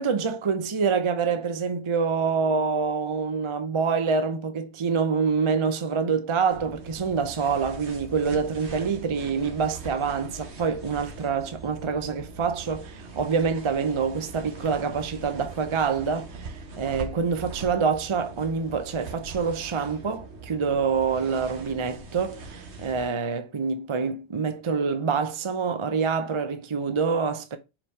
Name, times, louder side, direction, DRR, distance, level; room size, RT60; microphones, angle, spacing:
voice 1, 0.0-27.6, right 5 dB, 35° right, 0.5 m, -26 dB
sound 1, 6.5-23.1, right 3 dB, 80° right, 1.4 m, -41 dB
4.8 x 3.7 x 5.4 m
omnidirectional pair, 1.1 m